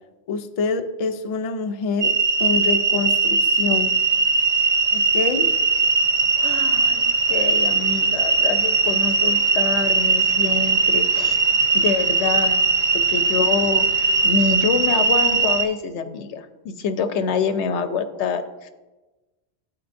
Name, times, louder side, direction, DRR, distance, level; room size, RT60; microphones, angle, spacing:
voice 1, 0.3-2.1 2.4-3.9 4.9-5.5, left 4 dB, 55° left, 7 dB, 0.4 m, -26 dB
sound 1, 2.0-15.7, right 4 dB, 50° right, 0.6 m, -20 dB
voice 2, 6.4-11.4 11.7-12.6 12.9-18.7, left 5 dB, 90° left, 8 dB, 0.9 m, -26 dB
12.0 x 4.4 x 2.6 m, 1.1 s
omnidirectional pair, 1.1 m